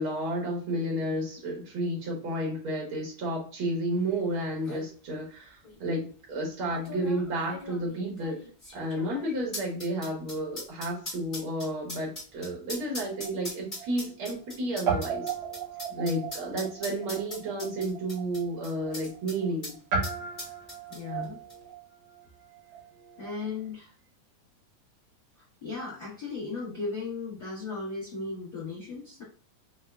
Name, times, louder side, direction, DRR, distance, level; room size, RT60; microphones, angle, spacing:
voice 1, 0.0-8.4 8.7-15.3 16.0-19.8, right 1 dB, 85° right, -2 dB, 1.1 m, -31 dB
sound 1, 4.1-4.2 4.5-4.9 5.6-5.8 6.7-19.4 19.6-19.7 20.0-21.2 21.5-21.6, left 1 dB, 45° left, 0.6 m, -40 dB
Guitar, 12.8-14.5 14.8-23.5, right 5 dB, 65° right, 1.8 m, -36 dB
voice 2, 15.9-16.3 20.9-21.4 23.2-23.9 25.6-29.2, left 4 dB, 85° left, -5 dB, 0.8 m, -36 dB
5.4 x 2.3 x 2.2 m, 0.40 s
omnidirectional pair, 4.0 m